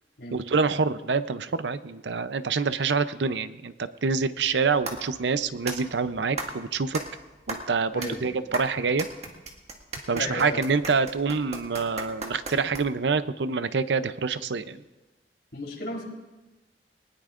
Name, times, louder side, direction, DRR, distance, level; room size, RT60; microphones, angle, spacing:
voice 1, 0.3-7.0 7.5-9.1 10.1-14.8, right 4 dB, 80° right, 13 dB, 0.6 m, -26 dB
sound 1, 4.5-13.1, right 3 dB, 40° right, 1.8 m, -38 dB
voice 2, 7.9-8.3 10.1-10.6 15.5-16.0, left 1 dB, 70° left, -1 dB, 3.7 m, -34 dB
21.5 x 19.5 x 2.5 m, 1.1 s
head